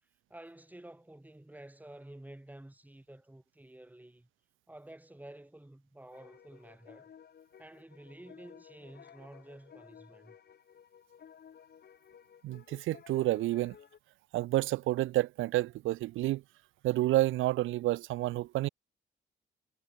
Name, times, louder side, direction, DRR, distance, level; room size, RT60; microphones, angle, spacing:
voice 1, 0.3-4.3 4.7-7.1 7.6-10.4, right 1 dB, 10° right, 7.1 m, -51 dB
sound 1, 6.1-14.0, left 8 dB, 55° left, 3.4 m, -56 dB
voice 2, 12.4-13.7 14.3-16.4 16.8-18.7, right 16 dB, 85° right, 0.9 m, -29 dB
cardioid pair, 90°, 20 cm